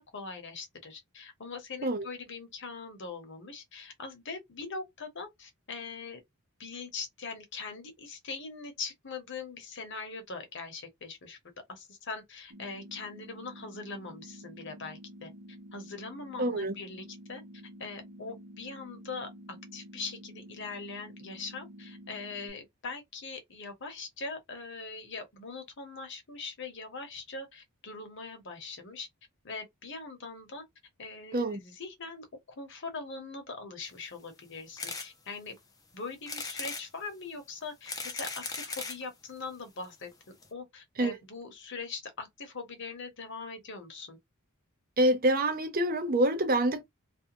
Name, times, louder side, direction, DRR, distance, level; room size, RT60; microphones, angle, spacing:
voice 1, 0.0-6.2 6.6-11.4 11.7-15.3 15.7-17.4 17.8-29.1 29.4-30.6 31.0-32.3 32.6-35.5 35.9-40.1 40.5-44.2, left 4 dB, 55° left, 0.9 m, -41 dB
sound 1, 12.5-22.5, equal, 75° right, 0.8 m, -49 dB
voice 2, 16.4-16.7 31.3-31.6 41.0-41.2 45.0-46.8, right 1 dB, 40° right, 0.6 m, -26 dB
sound 2, 34.8-35.1 35.6-35.7 36.3-36.9 37.6-39.0 39.8-39.9 40.1-40.2 40.4-40.5, left 4 dB, 15° left, 0.4 m, -38 dB
2.5 x 2.2 x 2.8 m
head